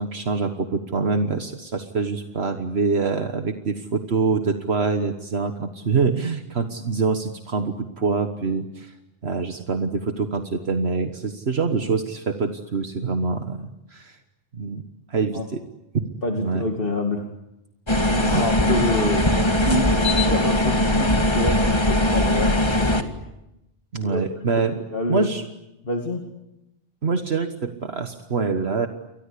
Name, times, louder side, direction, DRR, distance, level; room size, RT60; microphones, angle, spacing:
voice 1, 0.0-8.9 9.2-14.2 14.5-14.8 15.1-15.6 15.9-16.1 16.4-16.6 18.2-18.5 23.9-24.8 25.1-25.4 27.0-28.9, right 4 dB, 70° right, 7 dB, 1.6 m, -25 dB
voice 2, 16.2-17.3 18.1-19.3 19.7-19.9 20.3-22.9 24.0-24.2 24.7-25.3 25.8-26.2, left 1 dB, 55° left, 2 dB, 2.5 m, -27 dB
sound 1, 17.9-23.0, left 1 dB, 25° left, 2.0 m, -20 dB
29.5 x 23.5 x 8.5 m, 0.91 s
omnidirectional pair, 1.1 m